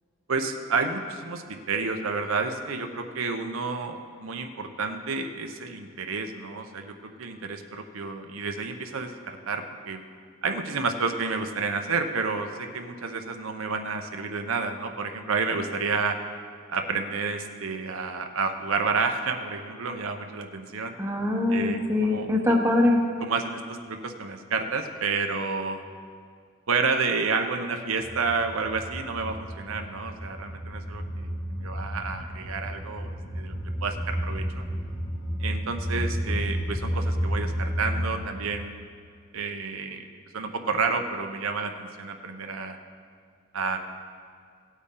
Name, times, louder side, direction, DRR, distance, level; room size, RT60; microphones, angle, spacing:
voice 1, 0.3-10.0 10.4-16.2 16.7-20.9 21.5-22.3 23.2-25.8 26.7-31.3 31.6-33.5 33.8-34.6 35.4-38.7 39.3-40.1 40.3-42.8 43.5-43.8, right 4 dB, 70° right, 5 dB, 0.7 m, -30 dB
voice 2, 21.0-23.0, left 2 dB, 10° right, 0 dB, 0.9 m, -23 dB
sound 1, 28.0-38.2, equal, 20° left, 1.6 m, -31 dB
17.5 x 8.2 x 3.8 m, 2.1 s
head